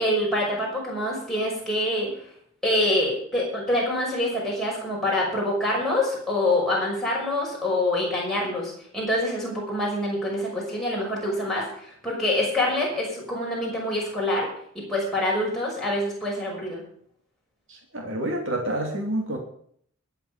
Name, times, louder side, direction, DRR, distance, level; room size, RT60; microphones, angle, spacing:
voice 1, 0.0-2.1 2.6-14.5 14.7-16.8, left 1 dB, ahead, -5 dB, 6.0 m, -26 dB
voice 2, 17.7-19.4, right 1 dB, 60° right, 1 dB, 2.8 m, -28 dB
23.0 x 7.9 x 5.2 m, 0.63 s
head